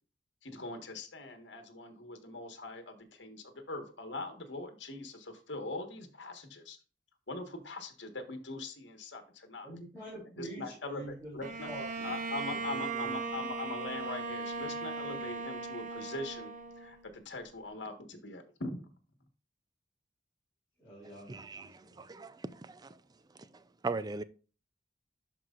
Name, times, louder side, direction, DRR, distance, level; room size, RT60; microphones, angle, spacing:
voice 1, 0.4-6.8 7.3-9.7 10.4-11.7 12.0-16.5 16.8-18.9, left 2 dB, 75° left, 1.4 m, -42 dB
voice 2, 9.6-11.3 11.6-13.4 20.8-22.0, right 1 dB, 15° left, 3.5 m, -47 dB
Bowed string instrument, 11.4-17.2, right 4 dB, 45° right, 1.0 m, -38 dB
voice 3, 21.3-23.0 23.3-24.2, right 3 dB, 20° right, 0.4 m, -40 dB
12.0 x 4.8 x 2.5 m
head